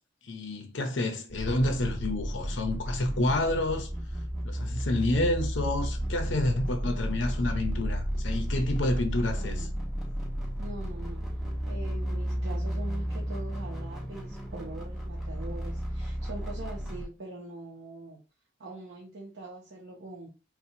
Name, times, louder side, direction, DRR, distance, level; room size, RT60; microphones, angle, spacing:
voice 1, 0.2-3.9 4.4-9.7, left 1 dB, 85° left, 0.7 m, -29 dB
sound 1, 1.3-17.1, equal, ahead, 1.1 m, -33 dB
voice 2, 8.9-9.7 10.6-11.3 11.7-18.2 18.6-20.3, right 2 dB, 75° right, 0.7 m, -43 dB
4.2 x 2.2 x 2.7 m
head